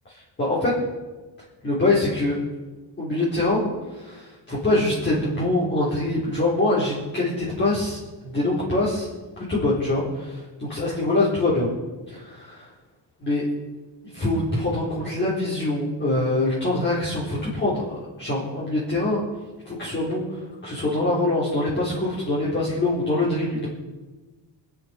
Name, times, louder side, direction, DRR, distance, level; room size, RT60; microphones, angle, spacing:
voice 1, 0.1-0.7 1.6-2.4 3.0-11.7 12.1-12.7 13.2-13.5 14.1-17.8 18.2-19.2 19.7-23.7, left 2 dB, 25° left, -9 dB, 4.2 m, -24 dB
26.0 x 10.0 x 5.4 m, 1.3 s
cardioid pair, 165°, 45 cm